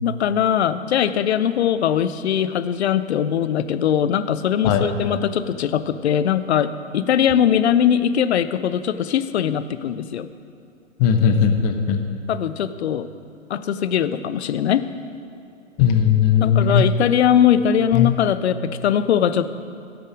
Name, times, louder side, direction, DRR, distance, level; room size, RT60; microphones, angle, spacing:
voice 1, 0.0-10.3 12.3-13.1 13.5-14.9 16.4-19.5, left 9 dB, 60° left, 13 dB, 0.7 m, -20 dB
voice 2, 11.0-12.0 15.8-16.8 17.9-18.1, left 7 dB, 30° left, 5 dB, 1.0 m, -17 dB
16.0 x 6.6 x 5.0 m, 2.5 s
figure-of-eight pair, 115°, 38 cm